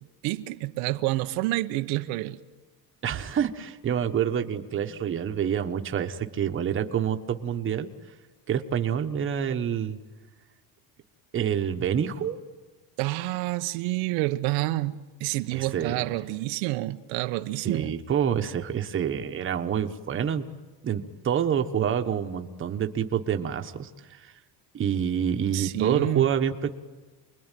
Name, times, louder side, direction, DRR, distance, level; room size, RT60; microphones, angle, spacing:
voice 1, 0.2-2.4 13.0-17.9 25.5-26.3, right 18 dB, 90° right, 1.1 m, -28 dB
voice 2, 3.0-7.9 8.5-10.0 11.3-12.4 15.5-16.0 17.6-20.5 20.8-23.9 24.2-24.3 24.7-26.7, right 8 dB, 25° right, 1.3 m, -27 dB
28.5 x 21.5 x 9.2 m
cardioid pair, 155°, 45 cm